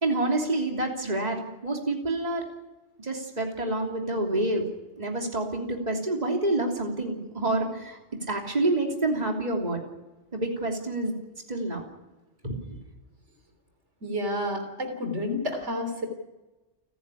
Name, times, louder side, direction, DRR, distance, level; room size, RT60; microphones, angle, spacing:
voice 1, 0.0-1.4 1.6-2.4 3.0-4.6 5.0-8.0 8.3-9.8 10.3-11.1 11.5-11.8 12.4-12.6, right 2 dB, 35° right, 0 dB, 3.3 m, -27 dB
voice 2, 14.0-16.1, left 1 dB, 80° right, 6 dB, 3.8 m, -30 dB
30.0 x 10.5 x 10.0 m, 1.1 s
omnidirectional pair, 1.2 m